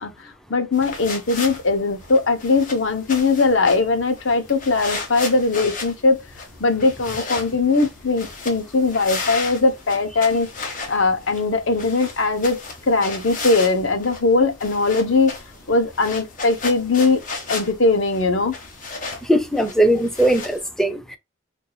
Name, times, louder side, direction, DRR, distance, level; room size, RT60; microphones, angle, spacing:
voice 1, 0.0-6.2 6.6-10.5 10.9-15.3 15.7-18.5, left 3 dB, 70° left, 0.8 m, -20 dB
sound 1, 0.7-20.6, left 4 dB, 45° left, 1.2 m, -35 dB
voice 2, 19.3-21.2, right 1 dB, ahead, 0.5 m, -19 dB
4.6 x 2.6 x 2.3 m
head